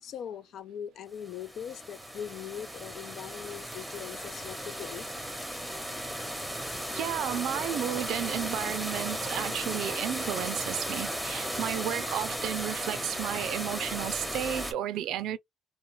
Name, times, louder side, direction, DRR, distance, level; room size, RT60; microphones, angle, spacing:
voice 1, 0.0-5.1, left 9 dB, 75° left, 0.3 m, -41 dB
sound 1, 1.2-14.7, equal, ahead, 0.9 m, -35 dB
voice 2, 6.9-15.4, right 11 dB, 85° right, 0.4 m, -33 dB
2.3 x 2.0 x 3.0 m
cardioid pair, 90°, 0 cm